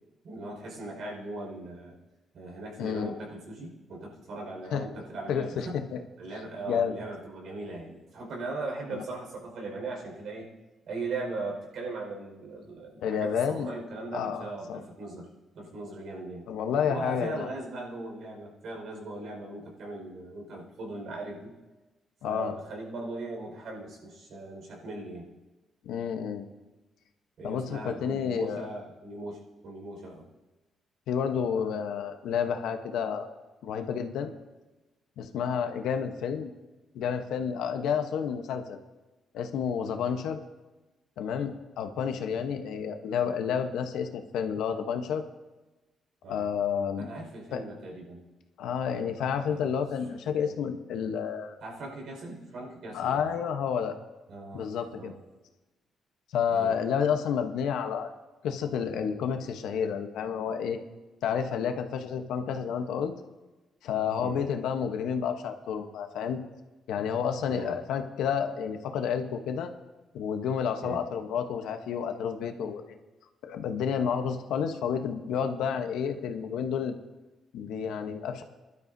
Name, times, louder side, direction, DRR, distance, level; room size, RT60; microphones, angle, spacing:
voice 1, 0.2-2.0 2.3-5.8 6.2-10.5 10.9-15.3 15.5-16.5 16.9-21.5 22.2-25.3 27.4-30.3 46.2-46.5 47.0-48.2 49.5-49.8 51.6-53.3 54.3-55.2 56.5-56.7 64.2-64.4 67.5-67.8 70.8-71.0, right 2 dB, 70° right, -1 dB, 5.0 m, -39 dB
voice 2, 2.8-3.1 4.7-4.8 5.3-6.0 6.7-7.0 8.9-9.0 13.0-13.7 14.1-14.8 16.5-17.5 22.2-22.6 25.8-26.4 27.4-28.7 31.1-33.3 33.6-34.3 35.2-36.5 36.9-38.8 39.3-40.4 41.2-45.2 46.3-47.1 47.5-47.6 48.6-51.5 52.9-54.0 54.5-55.1 56.3-58.1 58.4-60.8 61.2-63.1 63.8-66.4 66.9-69.7 70.1-73.0 73.4-76.9 77.5-78.4, left 7 dB, 85° left, 6 dB, 1.0 m, -30 dB
21.5 x 12.0 x 2.7 m, 1.2 s
cardioid pair, 90°, 0 cm